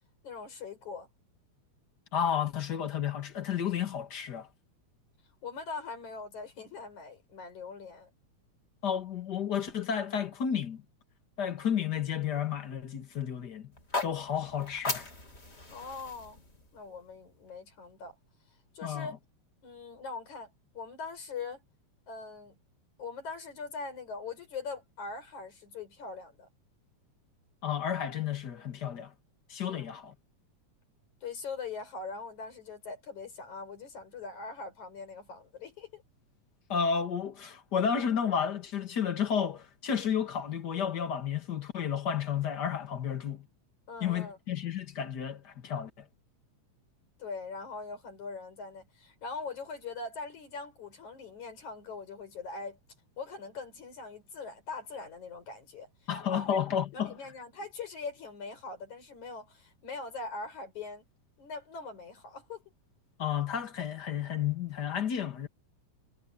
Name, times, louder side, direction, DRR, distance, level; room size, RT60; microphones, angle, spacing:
voice 1, 0.2-1.1 5.4-8.1 15.7-16.4 16.7-18.2 18.7-19.2 19.6-21.6 22.1-22.6 23.0-26.5 29.7-29.9 31.2-36.0 43.9-44.4 47.2-52.8 53.2-56.6 56.9-61.0 61.4-62.6, left 4 dB, 75° left, 7.3 m, -42 dB
voice 2, 2.1-4.5 8.8-10.8 11.4-13.7 14.0-15.1 18.8-19.1 27.6-29.1 29.5-30.1 36.7-43.5 44.0-46.1 56.1-57.1 63.2-65.5, left 8 dB, 40° left, 2.1 m, -32 dB
sound 1, 13.7-17.9, left 2 dB, 20° left, 3.4 m, -39 dB
omnidirectional pair, 3.3 m